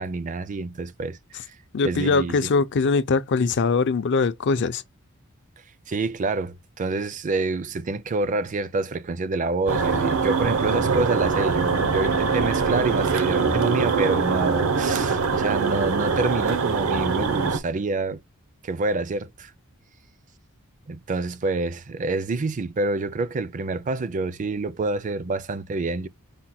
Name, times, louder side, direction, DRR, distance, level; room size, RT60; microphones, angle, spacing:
voice 1, 0.0-1.6 1.8-2.5 5.9-18.2 18.6-19.5 20.9-26.1, right 3 dB, 35° right, 0.4 m, -27 dB
voice 2, 1.7-4.8, left 4 dB, 55° left, 0.5 m, -22 dB
sound 1, 9.7-17.6, right 5 dB, 70° right, 0.8 m, -23 dB
5.0 x 2.2 x 4.2 m
head